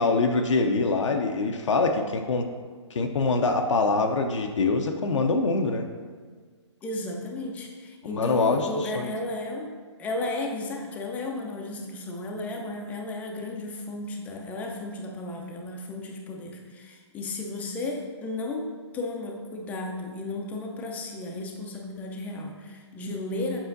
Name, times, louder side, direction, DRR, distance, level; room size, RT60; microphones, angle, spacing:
voice 1, 0.0-2.4 2.9-5.9 8.0-9.1, left 3 dB, 80° left, 4 dB, 0.6 m, -24 dB
voice 2, 6.8-9.7 10.0-23.6, left 2 dB, 10° left, 1 dB, 0.5 m, -34 dB
7.2 x 5.6 x 2.6 m, 1.5 s
hypercardioid pair, 145°, 15 cm